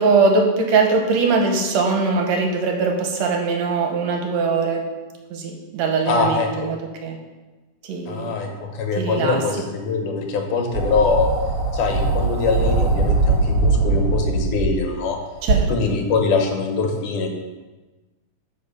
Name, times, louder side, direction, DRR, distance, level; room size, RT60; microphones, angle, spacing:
voice 1, 0.0-4.8 5.3-7.2 7.8-8.4 9.0-9.4 15.4-16.0, right 4 dB, 70° right, 2 dB, 2.0 m, -21 dB
voice 2, 6.1-6.5 8.1-11.3 11.7-15.2 15.7-17.3, left 4 dB, 80° left, 4 dB, 2.5 m, -23 dB
sound 1, 10.7-14.9 15.5-15.6, right 3 dB, 35° right, 2.2 m, -20 dB
9.4 x 4.7 x 5.5 m, 1.2 s
omnidirectional pair, 3.6 m